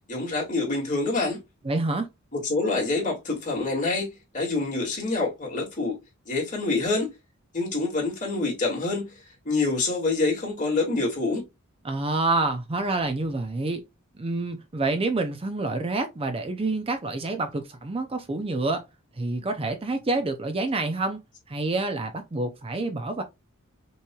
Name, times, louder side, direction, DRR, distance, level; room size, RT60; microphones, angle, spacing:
voice 1, 0.1-1.4 2.4-5.9 6.3-7.1 7.5-9.1 9.5-11.4, left 3 dB, 40° left, 2.2 m, -26 dB
voice 2, 1.6-2.1 11.8-13.8 14.2-18.8 19.2-21.2 21.5-23.2, right 2 dB, 25° right, 0.5 m, -27 dB
5.8 x 3.0 x 2.3 m
head